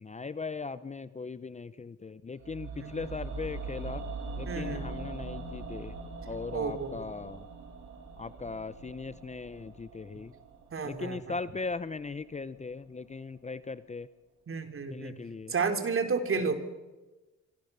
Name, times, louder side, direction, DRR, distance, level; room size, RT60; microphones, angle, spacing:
voice 1, 0.0-4.0 4.4-5.9 6.3-7.4 8.2-10.3 10.8-14.1 14.9-15.5 16.4-16.5, left 4 dB, 25° left, 15 dB, 0.8 m, -39 dB
sound 1, 2.4-12.5 12.8-12.9, right 3 dB, 70° right, 6.3 m, -42 dB
voice 2, 2.7-3.1 4.5-4.8 6.5-7.1 10.7-11.3 14.5-15.2 15.5-16.6, right 5 dB, 45° right, 7 dB, 3.5 m, -32 dB
26.5 x 25.5 x 6.9 m, 1.2 s
cardioid pair, 90°, 30 cm